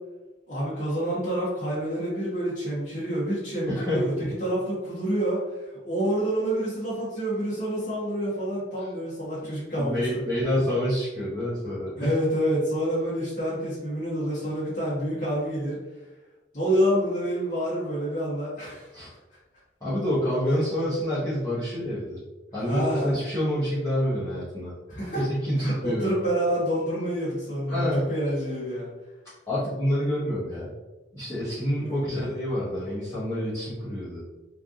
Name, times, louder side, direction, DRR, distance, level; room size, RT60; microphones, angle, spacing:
voice 1, 0.5-10.2 12.0-15.8 16.5-18.9 22.6-23.1 24.9-25.2 25.6-28.9 31.7-32.3, equal, 45° left, -10 dB, 1.2 m, -28 dB
voice 2, 3.6-4.1 9.8-12.2 18.9-19.1 19.8-22.2 22.5-24.7 25.1-26.1 27.7-28.1 29.5-30.7 31.1-34.2, equal, 20° left, -12 dB, 1.0 m, -27 dB
3.3 x 2.6 x 3.6 m, 1.1 s
head